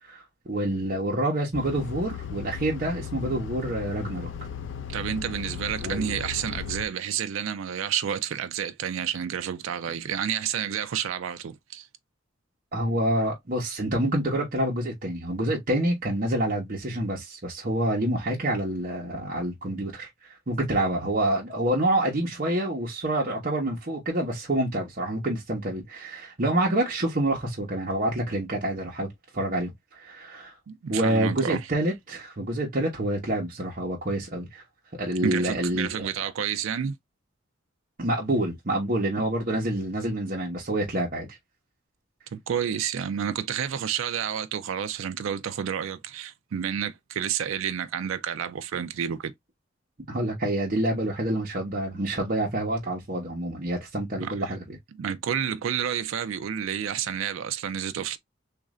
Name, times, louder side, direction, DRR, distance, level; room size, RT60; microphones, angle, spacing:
voice 1, 0.0-4.3 5.8-6.2 12.7-20.1 20.5-29.1 29.3-30.5 30.9-34.6 35.0-36.3 38.0-41.3 50.1-54.8, right 1 dB, 45° right, 1.0 m, -27 dB
sound 1, 1.5-6.9, left 7 dB, 65° left, 0.5 m, -36 dB
voice 2, 4.9-11.9 30.7-31.7 35.2-37.0 42.3-49.3 54.2-54.6 54.9-58.2, right 8 dB, 80° right, 0.4 m, -30 dB
3.1 x 2.5 x 3.6 m
head